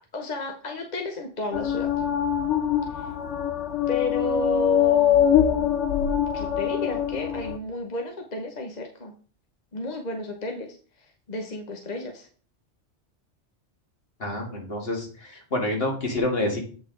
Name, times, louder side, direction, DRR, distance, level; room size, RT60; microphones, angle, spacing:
voice 1, 0.1-2.1 2.9-3.1 3.9-5.8 6.3-9.1 9.7-12.3, left 2 dB, 40° left, 3 dB, 1.0 m, -33 dB
sound 1, 1.5-7.6, left 9 dB, 85° left, 1.1 m, -23 dB
voice 2, 14.2-16.6, left 1 dB, 55° left, 1 dB, 2.1 m, -28 dB
8.2 x 5.7 x 3.8 m, 0.41 s
omnidirectional pair, 1.2 m